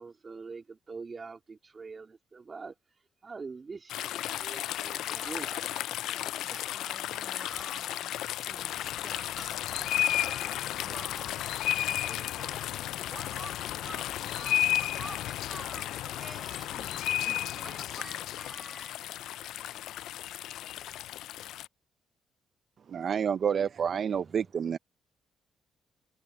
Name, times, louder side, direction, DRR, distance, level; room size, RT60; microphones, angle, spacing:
voice 1, 0.0-2.7 3.2-5.0 5.3-5.7 23.5-23.7, right 4 dB, 35° right, 2.6 m, -44 dB
sound 1, 3.9-21.7, left 12 dB, 85° left, 0.3 m, -33 dB
voice 2, 5.0-9.8 10.0-11.8 12.0-12.8 13.1-19.9, right 2 dB, 15° right, 6.2 m, -48 dB
voice 3, 22.9-24.8, right 7 dB, 55° right, 0.6 m, -29 dB
cardioid pair, 90°, 0 cm